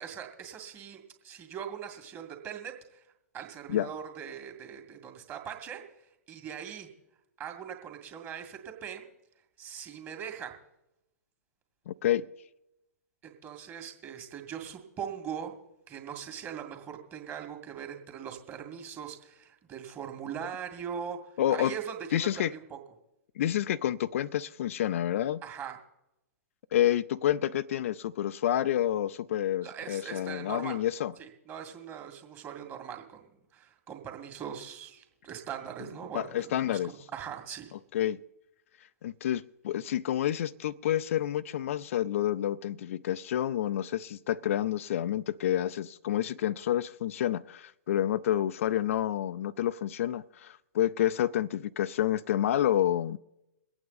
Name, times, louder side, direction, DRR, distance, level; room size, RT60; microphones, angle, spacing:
voice 1, 0.0-3.0 3.3-5.8 6.3-6.9 7.4-9.1 9.6-10.5 13.2-15.5 15.9-21.2 21.5-22.8 25.4-25.8 29.6-30.8 31.2-37.7, right 8 dB, 25° right, 2.1 m, -41 dB
voice 2, 11.9-12.3 21.4-21.7 22.1-22.5 23.4-25.4 26.7-31.1 36.1-36.9 37.9-38.2 39.0-53.2, left 11 dB, 55° left, 0.4 m, -29 dB
23.0 x 8.7 x 4.1 m
figure-of-eight pair, 110°, 9 cm